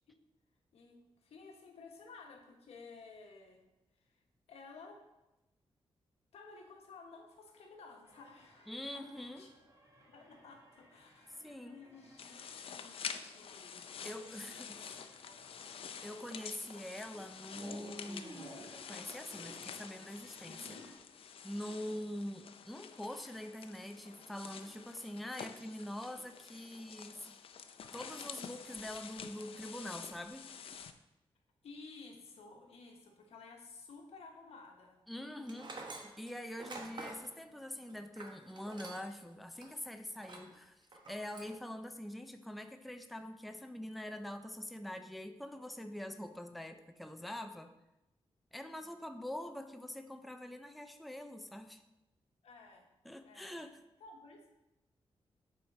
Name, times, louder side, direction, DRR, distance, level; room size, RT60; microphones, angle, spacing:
voice 1, 0.7-3.6 4.1-4.2 4.5-5.0 6.3-9.0 9.4-9.5 10.1-14.7 15.2-15.4 20.4-20.9 31.6-35.0 48.7-48.9 52.4-52.9 53.2-53.6 54.0-54.5, left 4 dB, 85° left, 2 dB, 1.3 m, -54 dB
sound 1, 8.0-21.0, right 1 dB, 30° right, 2.0 m, -57 dB
voice 2, 8.7-9.4 11.4-11.8 14.0-15.0 16.0-20.6 21.4-27.3 27.9-30.5 35.1-47.7 48.5-51.8 53.0-53.8, left 1 dB, ahead, 7 dB, 0.5 m, -44 dB
sound 2, 12.2-30.9, left 7 dB, 65° left, 0.5 m, -48 dB
Tools, 35.5-39.2 39.6-39.7 40.2-40.5 40.9-41.6, right 3 dB, 45° right, 1.1 m, -48 dB
7.6 x 5.0 x 4.2 m, 0.96 s
wide cardioid pair, 110°, 10 cm